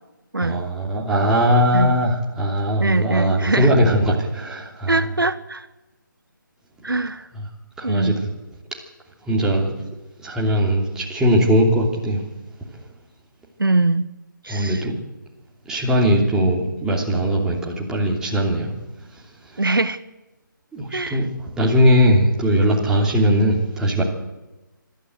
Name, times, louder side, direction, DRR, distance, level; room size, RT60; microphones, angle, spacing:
voice 1, 0.4-5.0 7.8-8.2 9.3-9.8 10.2-12.2 14.5-14.9 15.7-18.7 20.7-21.3 21.6-24.0, equal, 5° right, 2.9 m, -19 dB
voice 2, 2.8-3.7 4.9-5.7 6.8-7.3 7.8-8.3 13.6-14.1 14.4-14.9 19.6-20.0 20.9-21.2, right 2 dB, 90° right, 1.2 m, -22 dB
25.5 x 13.0 x 7.9 m
figure-of-eight pair, 150°, 11 cm